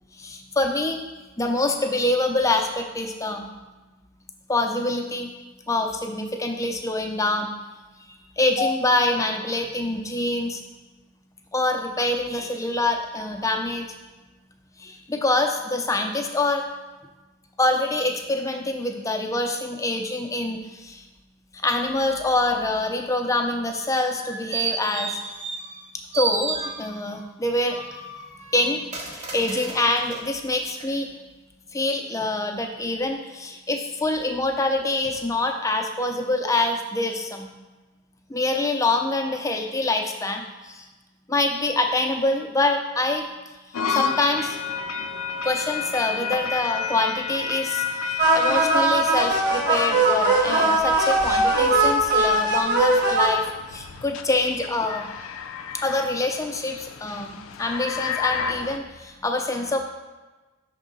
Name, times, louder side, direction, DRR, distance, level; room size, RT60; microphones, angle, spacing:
voice 1, 0.2-1.0 1.4-3.5 4.5-5.3 5.7-7.5 8.1-10.6 11.5-13.9 14.8-16.6 17.6-21.0 21.5-25.2 26.1-27.8 28.5-31.1 31.7-37.5 38.3-40.9 41.3-43.3 43.9-44.6 45.4-53.4 53.7-55.1 55.8-59.8, left 2 dB, 15° left, 3 dB, 0.5 m, -25 dB
sound 1, 24.0-25.8 26.1-27.1 27.7-30.3 30.8-30.9, right 4 dB, 35° right, 0.8 m, -32 dB
sound 2, 43.7-58.8, left 6 dB, 75° left, 0.4 m, -32 dB
sound 3, 48.2-53.3, right 2 dB, 55° right, 1.2 m, -20 dB
5.8 x 3.6 x 5.3 m, 1.2 s
head